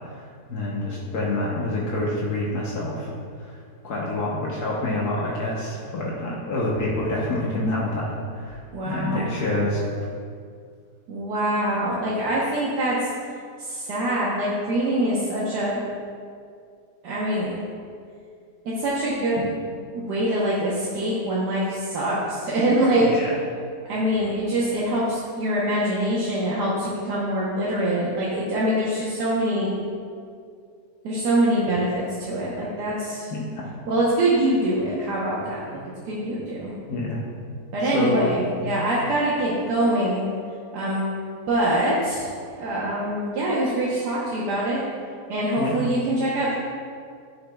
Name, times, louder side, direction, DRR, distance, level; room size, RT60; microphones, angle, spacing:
voice 1, 0.1-3.1 3.5-3.6 3.8-8.1 8.3-8.6 8.8-9.8 23.3-23.4 33.3-33.7 36.9-37.2 37.8-38.3 45.6-45.9, left 1 dB, 70° left, -5 dB, 1.5 m, -27 dB
voice 2, 8.7-9.3 11.1-13.0 13.6-15.8 17.0-17.6 18.8-19.5 19.9-23.1 23.9-29.7 31.0-33.3 33.9-36.7 37.7-40.3 40.7-41.0 41.5-42.3 42.5-44.8 45.3-46.5, right 1 dB, 85° right, -7 dB, 1.6 m, -24 dB
11.0 x 6.4 x 2.3 m, 2.2 s
omnidirectional pair, 1.7 m